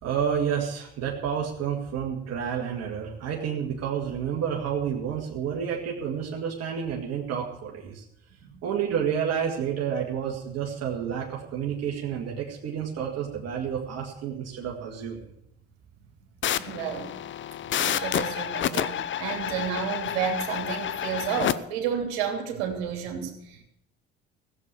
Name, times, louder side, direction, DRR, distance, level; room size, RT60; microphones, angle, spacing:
voice 1, 0.0-8.0 8.6-15.3, right 8 dB, 55° right, -1 dB, 2.2 m, -30 dB
sound 1, 16.4-21.5, left 10 dB, 40° left, 0.7 m, -29 dB
voice 2, 16.6-17.1 17.7-23.6, right 7 dB, 75° right, 4 dB, 3.0 m, -31 dB
15.5 x 7.7 x 8.5 m, 0.81 s
hypercardioid pair, 70°, 30 cm